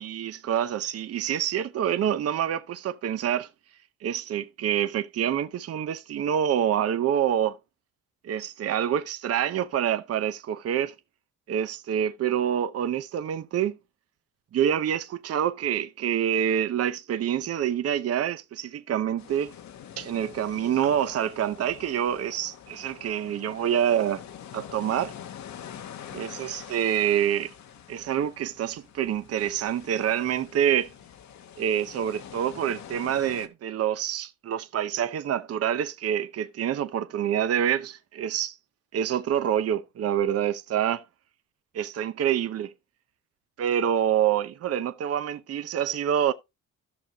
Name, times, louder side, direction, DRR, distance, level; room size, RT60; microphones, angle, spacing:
voice 1, 0.0-3.5 4.0-7.6 8.2-10.9 11.5-13.8 14.5-19.5 20.0-24.2 24.5-25.1 26.1-27.5 27.9-30.9 31.6-38.5 38.9-41.0 41.7-42.7 43.6-46.3, right 9 dB, 50° right, 0.7 m, -26 dB
sound 1, 19.2-33.5, left 9 dB, 65° left, 1.0 m, -45 dB
13.0 x 6.5 x 2.8 m
cardioid pair, 90°, 30 cm